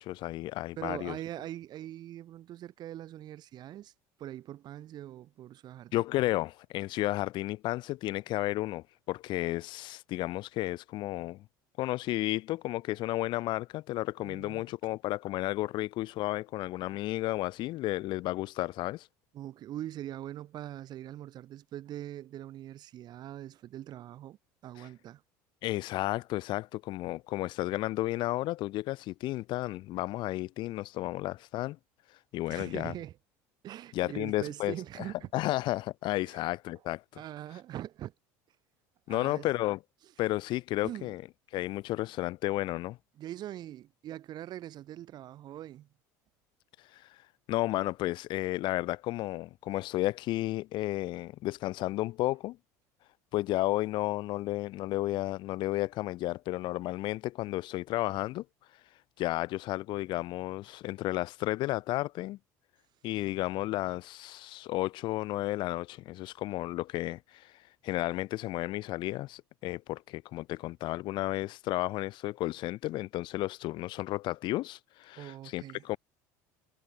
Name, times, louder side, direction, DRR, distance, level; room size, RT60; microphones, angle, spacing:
voice 1, 0.0-1.2 5.9-11.4 11.8-19.1 24.8-24.9 25.6-31.8 32.3-32.9 33.9-37.2 39.1-39.8 40.2-41.2 41.5-43.0 46.9-47.2 47.5-52.6 53.3-58.4 59.2-62.4 63.0-67.5 67.8-76.0, left 17 dB, 60° left, 2.2 m, -32 dB
voice 2, 0.8-3.9 4.2-6.0 14.2-14.6 19.3-24.4 24.6-25.2 32.5-33.1 33.6-35.3 36.2-36.4 37.1-38.1 39.1-39.5 40.8-41.1 43.2-45.9 75.2-75.8, right 12 dB, 50° right, 3.0 m, -42 dB
supercardioid pair, 100°, 9 cm